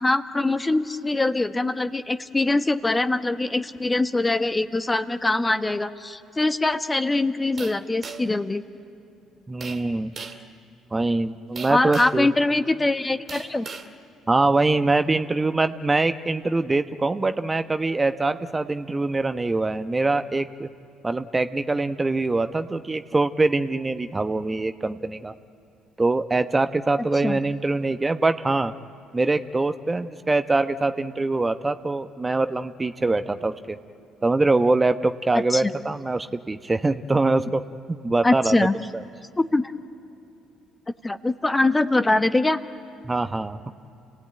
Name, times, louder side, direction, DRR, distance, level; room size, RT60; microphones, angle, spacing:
voice 1, 0.0-8.6 11.7-13.7 27.0-27.4 35.5-35.7 38.2-38.7 39.4-39.7 41.0-42.6, left 2 dB, 20° left, 10 dB, 1.1 m, -23 dB
sound 1, 7.6-8.4 9.6-9.8 10.2-10.5 11.6-12.2 13.3-13.9, right 5 dB, 45° right, 2.4 m, -37 dB
voice 2, 9.5-10.1 10.9-12.3 14.3-20.7 21.0-25.3 26.0-28.7 29.1-33.8 34.2-37.6 37.9-38.6 38.9-39.0 43.0-43.6, right 3 dB, 20° right, 9 dB, 0.9 m, -23 dB
29.5 x 17.0 x 9.1 m, 2.8 s
hypercardioid pair, 55°, 0 cm